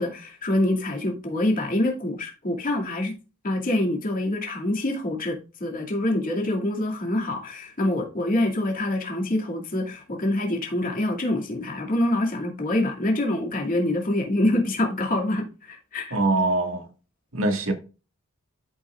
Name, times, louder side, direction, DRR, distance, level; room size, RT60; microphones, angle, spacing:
voice 1, 0.0-3.1 3.4-16.2, left 1 dB, 40° left, 2.3 m, -25 dB
voice 2, 16.1-16.9 17.3-17.7, right 2 dB, 75° right, 1.8 m, -23 dB
13.0 x 5.5 x 2.4 m
head